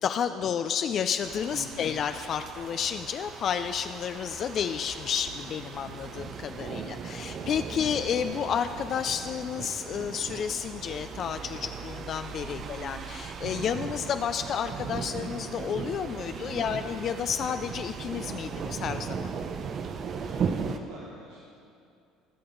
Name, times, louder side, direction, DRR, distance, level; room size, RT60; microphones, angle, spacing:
voice 1, 0.0-19.3, left 8 dB, 50° left, 9 dB, 0.4 m, -31 dB
sound 1, 1.2-20.8, right 6 dB, 50° right, 0.7 m, -37 dB
voice 2, 1.5-2.0 6.8-7.4 12.5-13.1 15.7-16.8 20.2-21.4, right 2 dB, 80° right, -4 dB, 1.4 m, -45 dB
20.0 x 6.8 x 3.8 m, 2.5 s
hypercardioid pair, 70°, 0 cm